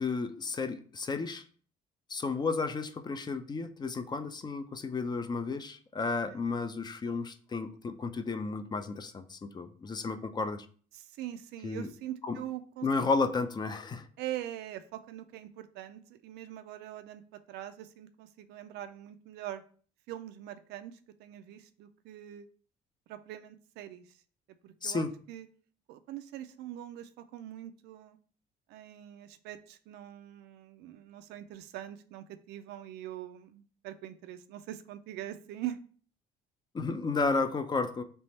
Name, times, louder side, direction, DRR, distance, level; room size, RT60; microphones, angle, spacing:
voice 1, 0.0-1.4 2.1-10.7 11.6-11.9 12.2-12.4 12.8-14.1 24.8-25.1 36.7-38.0, left 4 dB, 25° left, 10 dB, 0.4 m, -32 dB
voice 2, 10.9-12.9 14.2-17.2 17.5-19.6 20.1-22.5 23.1-24.2 24.6-25.5 25.9-28.2 28.7-35.8, right 12 dB, 85° right, 10 dB, 0.5 m, -43 dB
3.4 x 3.0 x 4.1 m, 0.44 s
cardioid pair, 110°, 17 cm